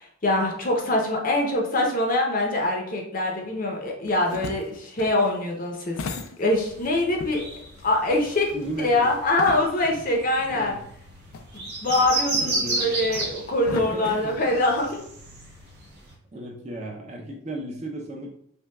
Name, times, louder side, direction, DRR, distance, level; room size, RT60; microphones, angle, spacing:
voice 1, 0.0-6.0 6.4-7.5 7.8-8.5 8.8-10.7 11.5-15.0, left 2 dB, 40° left, 0 dB, 0.6 m, -24 dB
sound 1, 4.0-6.9 7.2-10.0 10.4-10.5 11.3-15.0, left 4 dB, 85° left, 0.4 m, -38 dB
sound 2, 6.5-16.1, right 2 dB, 50° right, 0.9 m, -33 dB
voice 2, 8.5-9.1 10.5-10.9 12.4-13.0 13.7-14.4 16.3-18.3, right 1 dB, 30° right, 0 dB, 0.5 m, -35 dB
5.3 x 2.2 x 2.2 m, 0.70 s
head